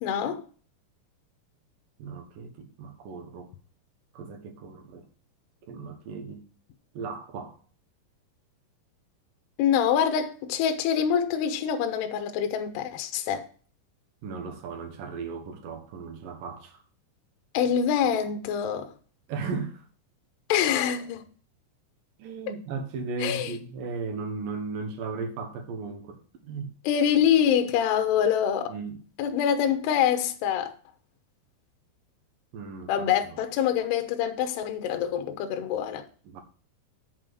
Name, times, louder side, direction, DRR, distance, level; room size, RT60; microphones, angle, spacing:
voice 1, 0.0-0.4 9.6-13.5 17.5-18.9 20.5-21.2 23.2-23.5 26.9-28.7 29.2-30.7 32.9-36.0, left 8 dB, 75° left, 2.7 m, -25 dB
voice 2, 2.0-3.5 4.1-5.1 5.7-6.4 6.9-7.6 14.2-16.8 19.3-19.8 22.2-26.7 28.7-29.0 32.5-32.9 36.2-36.4, right 4 dB, 65° right, 2.3 m, -36 dB
7.9 x 5.8 x 6.1 m
omnidirectional pair, 5.5 m